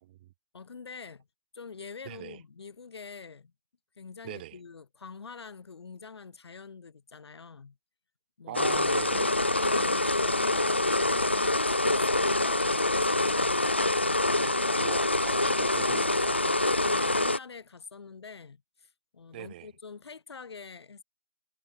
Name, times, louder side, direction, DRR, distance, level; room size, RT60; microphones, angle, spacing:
voice 1, 0.5-1.3 1.5-3.5 4.0-7.8 8.4-8.7 9.2-13.7 16.8-21.0, left 5 dB, 40° left, 3.5 m, -45 dB
voice 2, 2.1-2.4 4.2-4.6 8.5-9.3 14.8-16.5 19.3-19.7, right 15 dB, 15° right, 3.5 m, -42 dB
sound 1, 8.5-17.4, left 2 dB, 20° left, 0.5 m, -25 dB
hypercardioid pair, 175°, 20 cm